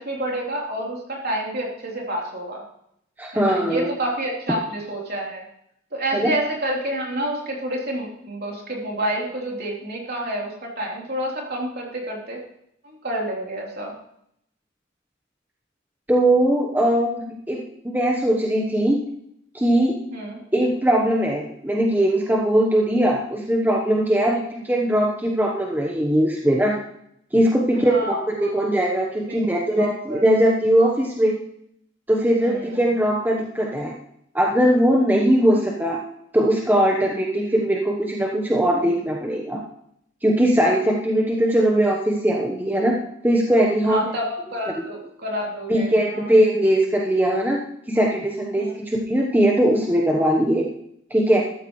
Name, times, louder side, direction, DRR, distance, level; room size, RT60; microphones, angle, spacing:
voice 1, 0.0-2.6 3.3-5.4 5.9-12.4 12.8-13.9 20.1-20.4 24.3-24.4 27.8-28.6 29.3-29.4 29.7-30.2 32.4-32.8 43.8-46.3 48.6-48.7, right 1 dB, 50° right, -2 dB, 3.6 m, -29 dB
voice 2, 3.2-3.9 6.1-6.3 16.1-19.0 19.5-20.0 20.5-26.8 27.3-31.4 32.1-33.9 34.3-36.0 36.3-39.6 40.2-43.0 43.2-44.1 44.8-44.9 45.7-47.6 47.9-50.6 51.1-51.4, right 1 dB, 10° right, -1 dB, 1.1 m, -20 dB
14.0 x 13.0 x 3.2 m, 0.73 s
head